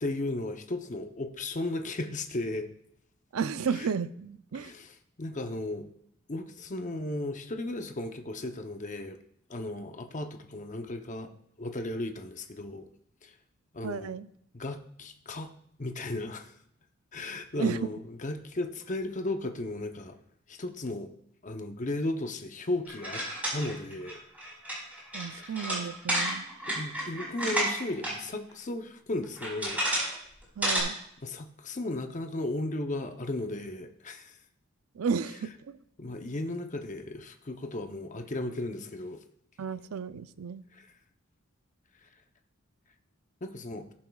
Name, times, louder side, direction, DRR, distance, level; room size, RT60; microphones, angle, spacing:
voice 1, 0.0-2.7 3.7-3.9 4.5-5.9 6.3-9.2 9.5-11.3 11.6-12.9 13.2-13.3 13.7-14.1 14.5-15.5 15.8-16.5 17.1-20.2 20.5-21.1 21.4-23.2 23.5-24.2 26.7-29.8 31.2-34.3 36.0-39.2 40.7-40.9 43.4-43.9, left 2 dB, 35° left, 6 dB, 0.8 m, -35 dB
voice 2, 3.3-4.7 13.8-14.3 17.6-17.8 25.1-26.4 30.6-31.0 35.0-35.8 39.6-40.6, right 6 dB, 90° right, 14 dB, 0.5 m, -33 dB
sound 1, 22.9-28.1 28.5-28.6 29.2-30.1 30.4-30.8, right 1 dB, 5° right, 4.6 m, -31 dB
19.5 x 7.3 x 2.4 m, 0.71 s
head